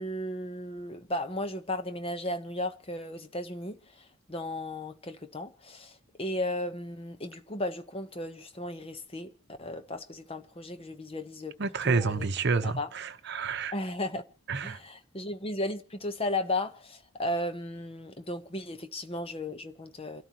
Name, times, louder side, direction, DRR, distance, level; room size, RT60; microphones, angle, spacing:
voice 1, 0.0-9.3 9.6-11.6 11.8-12.3 12.6-12.9 13.7-14.2 14.6-20.2, left 1 dB, 25° left, 0.9 m, -35 dB
voice 2, 11.6-13.7 14.5-14.8, right 4 dB, 55° right, 0.9 m, -29 dB
28.5 x 13.0 x 2.9 m
head